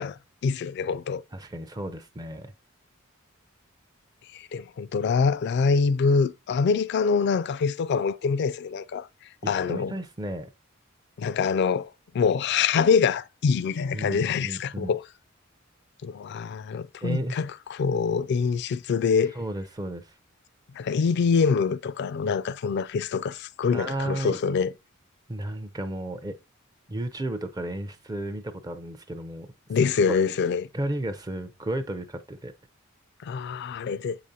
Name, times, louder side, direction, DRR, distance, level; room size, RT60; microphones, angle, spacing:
voice 1, 0.0-1.2 4.3-9.1 9.5-9.9 11.2-15.0 16.0-19.3 20.7-24.7 29.7-30.7 33.2-34.2, left 5 dB, 55° left, 0.3 m, -25 dB
voice 2, 1.3-2.5 9.7-10.5 13.9-14.9 17.0-17.4 19.4-20.1 23.7-24.4 25.3-26.4 26.9-29.5 30.1-30.2 30.7-32.5, right 1 dB, 20° right, 0.5 m, -33 dB
7.2 x 4.9 x 2.7 m
head